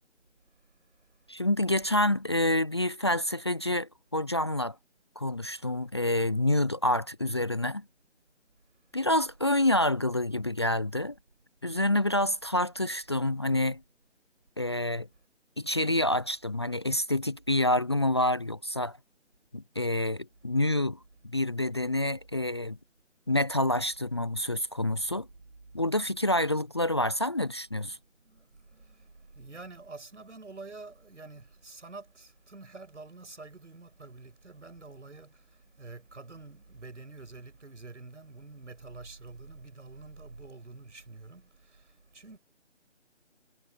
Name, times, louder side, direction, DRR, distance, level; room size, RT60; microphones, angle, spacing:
voice 1, 1.3-4.8 5.2-7.8 8.9-11.1 11.6-13.8 14.6-15.1 15.6-19.0 19.5-21.0 21.2-22.8 23.3-25.3 25.7-28.0, left 1 dB, 20° left, 0.6 m, -27 dB
voice 2, 28.2-42.4, right 3 dB, 75° right, 6.7 m, -47 dB
figure-of-eight pair, 160°, 36 cm